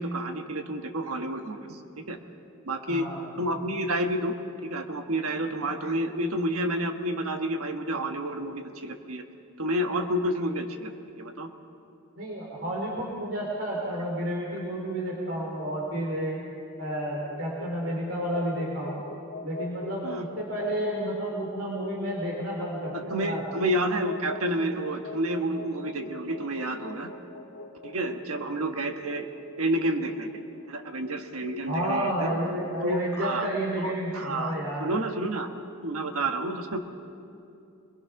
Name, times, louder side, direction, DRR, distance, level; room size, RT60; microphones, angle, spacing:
voice 1, 0.0-1.8 2.1-2.2 2.6-3.1 3.4-4.3 4.6-9.2 9.6-10.9 11.2-11.5 20.0-20.2 22.9-27.1 27.8-29.3 29.6-30.3 30.7-32.3 32.8-33.5 33.8-34.5 34.8-35.5 35.8-36.8, right 1 dB, 85° right, 5 dB, 1.4 m, -29 dB
voice 2, 2.9-3.2 12.2-16.4 16.8-19.0 19.4-23.4 31.7-34.9, equal, 65° right, -2 dB, 3.2 m, -31 dB
sound 1, 16.7-30.9, left 2 dB, 75° left, 1.4 m, -43 dB
25.5 x 21.5 x 5.9 m, 2.6 s
head